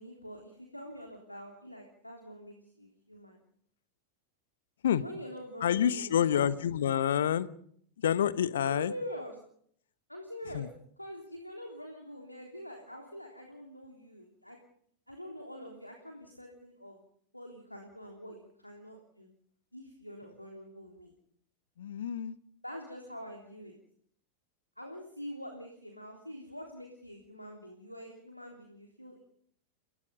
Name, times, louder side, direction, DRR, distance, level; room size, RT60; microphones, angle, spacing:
voice 1, 0.0-3.4 4.9-6.5 8.6-9.4 10.1-10.7 11.0-14.6 15.1-17.0 17.3-19.3 19.7-21.1 22.6-23.7 24.8-29.2, equal, 90° left, 2 dB, 3.5 m, -45 dB
voice 2, 5.6-7.5 8.0-8.9 10.5-10.7 21.8-22.4, left 9 dB, 60° left, 16 dB, 1.2 m, -28 dB
29.5 x 19.0 x 5.3 m, 0.63 s
figure-of-eight pair, 90°, 0 cm